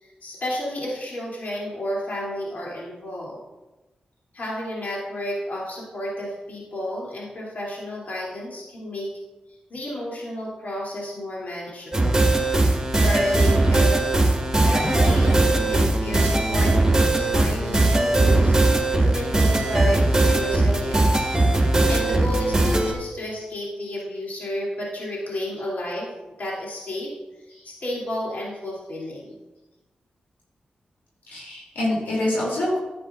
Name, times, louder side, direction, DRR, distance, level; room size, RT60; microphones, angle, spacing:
voice 1, 0.0-3.4 4.3-9.1 9.7-12.2 12.9-21.3 21.9-26.1 26.4-27.1 27.6-29.4, left 1 dB, 60° left, -5 dB, 2.8 m, -32 dB
sound 1, 11.9-22.9, right 2 dB, 15° right, 1.5 m, -19 dB
voice 2, 31.3-32.8, left 1 dB, 80° left, -6 dB, 2.8 m, -26 dB
10.5 x 8.2 x 2.5 m, 1.1 s
supercardioid pair, 40°, 3 cm